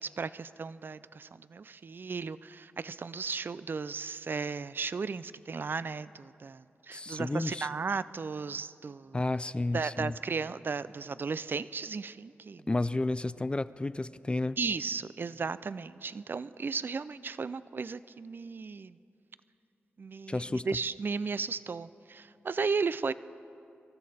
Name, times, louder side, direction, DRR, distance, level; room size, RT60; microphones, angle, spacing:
voice 1, 0.0-9.2 9.7-12.6 14.6-19.0 20.0-23.1, right 5 dB, 50° right, 0.4 m, -35 dB
voice 2, 6.9-7.7 9.1-10.1 12.7-14.6 20.3-20.7, left 2 dB, 25° left, 0.4 m, -31 dB
25.5 x 13.5 x 4.2 m
cardioid pair, 50°, 4 cm